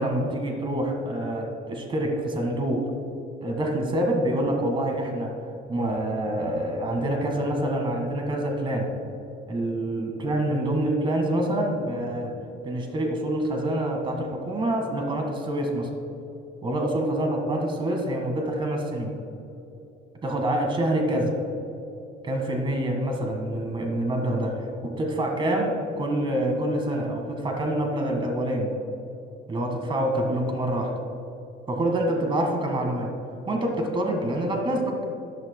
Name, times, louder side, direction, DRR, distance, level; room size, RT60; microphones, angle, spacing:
voice 1, 0.0-2.8 3.4-5.3 5.7-8.9 9.5-12.3 12.6-15.9 16.6-19.1 20.2-21.4 22.2-28.7 29.5-30.9 31.7-33.1 33.5-35.0, right 1 dB, 25° right, 2 dB, 1.7 m, -26 dB
14.0 x 11.5 x 2.2 m, 2.9 s
cardioid pair, 150°, 20 cm